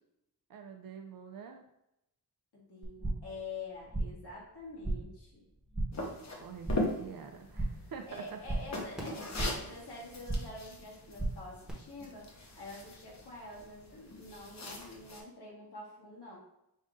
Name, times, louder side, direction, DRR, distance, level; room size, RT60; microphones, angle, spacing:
voice 1, 0.5-1.6 6.4-8.4, right 6 dB, 60° right, 4 dB, 0.5 m, -46 dB
voice 2, 2.5-5.4 8.1-12.3 12.5-16.4, left 2 dB, 70° left, -4 dB, 1.7 m, -47 dB
sound 1, 2.8-3.4 3.6-4.3 4.6-5.2 5.5-6.1 6.4-7.0 7.3-7.9 8.2-9.7 10.0-10.6 10.9-11.7, right 2 dB, ahead, 1.0 m, -36 dB
sound 2, 5.9-15.2, left 1 dB, 40° left, 0.9 m, -41 dB
5.3 x 2.5 x 3.6 m, 0.85 s
wide cardioid pair, 135°, 41 cm